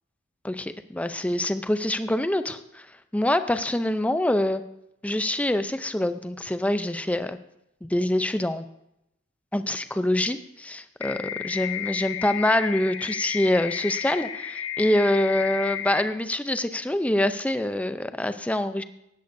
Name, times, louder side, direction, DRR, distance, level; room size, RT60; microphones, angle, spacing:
voice 1, 0.4-2.9 3.1-4.6 5.0-7.4 7.8-8.6 9.5-18.8, left 1 dB, 5° left, 10 dB, 0.5 m, -25 dB
sound 1, 11.0-16.0, left 10 dB, 90° left, 1.2 m, -32 dB
17.5 x 13.5 x 2.7 m, 0.81 s
head